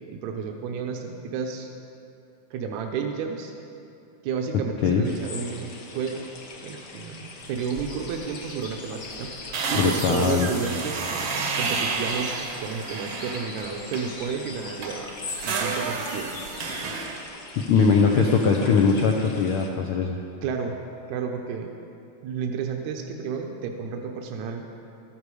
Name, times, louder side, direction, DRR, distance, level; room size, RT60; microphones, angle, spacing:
voice 1, 0.1-1.7 2.5-3.5 4.2-6.2 6.6-9.3 9.7-11.1 11.6-15.1 15.4-16.3 17.7-18.6 20.4-20.8 21.1-21.7 22.2-24.6, right 6 dB, 80° right, 3 dB, 2.1 m, -31 dB
sound 1, 5.0-19.7, left 3 dB, 55° left, 1.1 m, -41 dB
sound 2, 7.8-8.2 8.5-8.7 9.0-14.2 14.6-17.2, right 4 dB, 60° right, 1.4 m, -31 dB
voice 2, 9.8-10.5 17.6-20.2, left 5 dB, 80° left, 1 dB, 1.2 m, -21 dB
13.5 x 12.0 x 4.8 m, 2.7 s
omnidirectional pair, 3.3 m